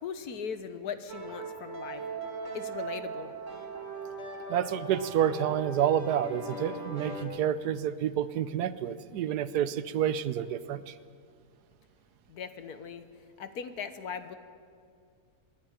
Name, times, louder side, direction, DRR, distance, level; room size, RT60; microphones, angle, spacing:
voice 1, 0.0-2.0 2.5-3.3 12.3-13.1 13.4-14.3, left 6 dB, 75° left, 11 dB, 1.6 m, -39 dB
sound 1, 1.1-7.3, right 3 dB, 50° right, 2.8 m, -39 dB
voice 2, 4.5-10.9, right 10 dB, 90° right, 15 dB, 1.3 m, -29 dB
25.5 x 10.5 x 10.0 m, 2.2 s
omnidirectional pair, 1.6 m